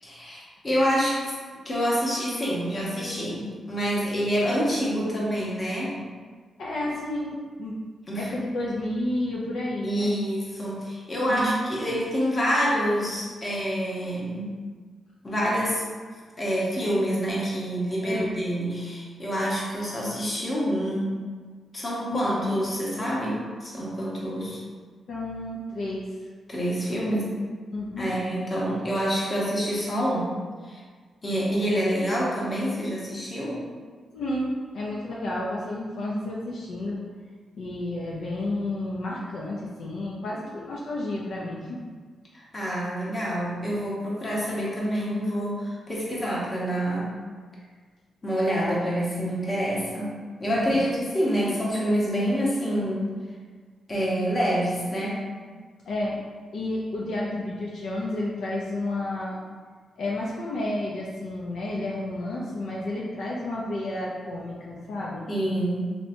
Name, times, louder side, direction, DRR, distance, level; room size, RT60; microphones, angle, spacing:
voice 1, 0.0-1.3 1.6-6.0 8.1-8.3 9.8-14.5 15.2-15.8 16.4-21.2 21.7-24.6 26.5-27.4 28.0-30.3 30.7-30.8 31.2-33.6 42.3-47.2 48.2-53.1 53.9-55.2 65.3-65.8, equal, 30° left, -5 dB, 0.9 m, -27 dB
voice 2, 6.6-7.7 8.2-10.2 11.3-11.5 18.0-18.3 22.1-22.6 25.1-26.1 27.7-28.1 34.1-37.0 37.6-41.8 50.5-50.8 55.9-56.2 56.5-59.4 60.0-65.3, left 1 dB, 75° left, -4 dB, 0.5 m, -31 dB
3.2 x 2.8 x 2.7 m, 1.5 s
cardioid pair, 100°, 0 cm